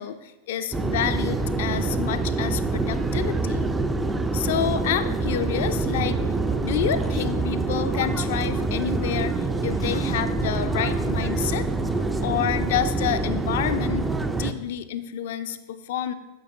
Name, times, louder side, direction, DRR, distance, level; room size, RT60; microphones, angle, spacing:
voice 1, 0.0-3.7 4.3-6.2 6.6-9.4 9.6-14.1 14.3-16.1, left 9 dB, 55° left, 10 dB, 0.4 m, -28 dB
sound 1, 0.7-14.5, right 3 dB, 10° right, 0.4 m, -26 dB
8.5 x 6.7 x 2.5 m, 1.2 s
figure-of-eight pair, 90°, 0 cm